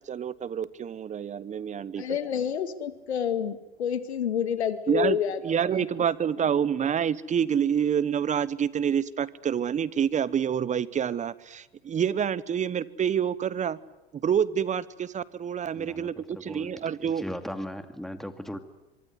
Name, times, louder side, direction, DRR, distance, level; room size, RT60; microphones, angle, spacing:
voice 1, 0.1-2.0 4.9-5.2 5.4-13.8 14.1-17.2, right 8 dB, 25° right, 18 dB, 1.1 m, -27 dB
voice 2, 2.0-5.6, left 8 dB, 85° left, 11 dB, 2.2 m, -29 dB
voice 3, 15.7-16.7 17.0-18.6, equal, ahead, 8 dB, 2.4 m, -38 dB
25.0 x 24.0 x 9.8 m, 0.98 s
hypercardioid pair, 105°, 32 cm